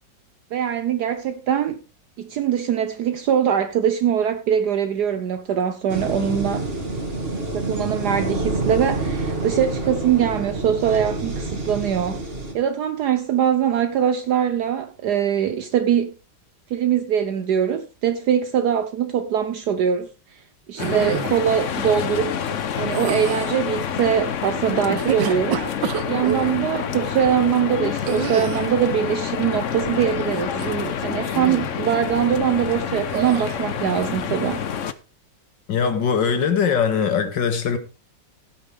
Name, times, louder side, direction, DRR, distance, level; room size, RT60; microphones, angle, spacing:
voice 1, 0.5-1.8 2.2-6.7 7.5-12.2 12.5-16.1 16.7-20.4 20.7-22.5 22.8-25.6 26.1-30.6 31.0-34.6, right 9 dB, 70° right, 1.3 m, -22 dB
sound 1, 5.9-12.5, right 2 dB, 35° right, 2.6 m, -27 dB
sound 2, 20.8-34.9, left 8 dB, 50° left, 1.0 m, -28 dB
sound 3, 20.8-21.4 22.9-23.5 24.8-26.5 28.0-28.8 30.5-31.0 31.3-31.7 33.1-33.6, right 9 dB, 85° right, 1.7 m, -27 dB
voice 2, 35.7-37.8, left 6 dB, 80° left, 2.3 m, -21 dB
16.0 x 8.9 x 3.5 m
omnidirectional pair, 1.9 m